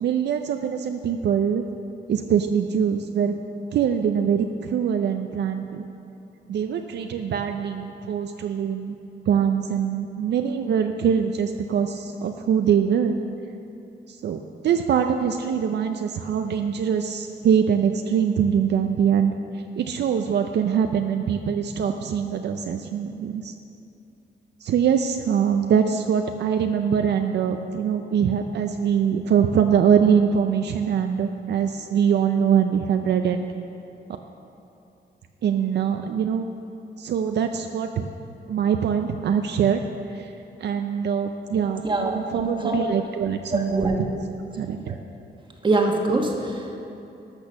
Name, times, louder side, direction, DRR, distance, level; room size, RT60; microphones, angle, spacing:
voice 1, 0.0-1.6 2.1-3.3 3.7-5.8 6.5-9.0 9.3-13.2 14.1-23.5 24.6-33.4 35.4-36.5 37.0-38.1 38.5-39.8 40.1-40.3 40.6-44.1 44.6-45.0, right 7 dB, 70° right, 6 dB, 0.5 m, -23 dB
voice 2, 41.8-42.9 43.5-44.0 45.6-46.8, right 2 dB, 25° right, 1 dB, 1.3 m, -24 dB
12.5 x 6.1 x 6.3 m, 2.8 s
wide cardioid pair, 135°, 18 cm